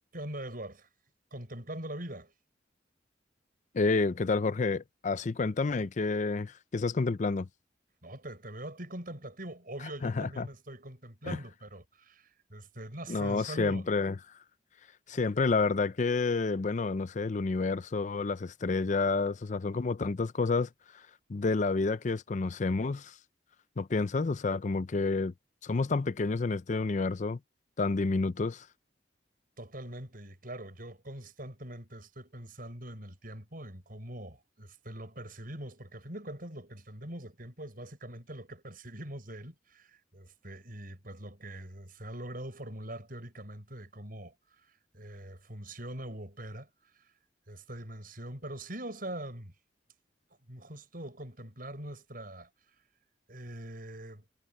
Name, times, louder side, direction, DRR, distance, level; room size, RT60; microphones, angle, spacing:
voice 1, 0.1-0.9 1.3-2.3 8.0-13.9 29.6-44.3 44.7-46.7 47.5-49.5 50.5-52.5 53.3-54.2, right 1 dB, 50° right, 7.2 m, -43 dB
voice 2, 3.7-7.5 10.0-10.5 11.3-11.4 13.1-14.2 15.1-23.2 23.8-25.3 25.6-27.4 27.8-28.7, left 3 dB, 40° left, 0.5 m, -29 dB
head